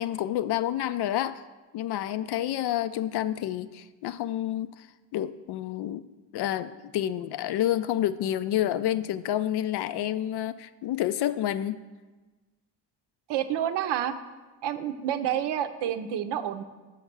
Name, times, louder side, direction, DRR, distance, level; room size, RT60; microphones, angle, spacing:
voice 1, 0.0-1.4 1.7-4.9 5.1-6.0 6.3-11.8, left 12 dB, 70° left, 14 dB, 0.5 m, -29 dB
voice 2, 13.3-14.1 14.6-16.6, right 10 dB, 75° right, 10 dB, 0.6 m, -29 dB
5.8 x 5.3 x 6.0 m, 1.3 s
supercardioid pair, 65°, 42 cm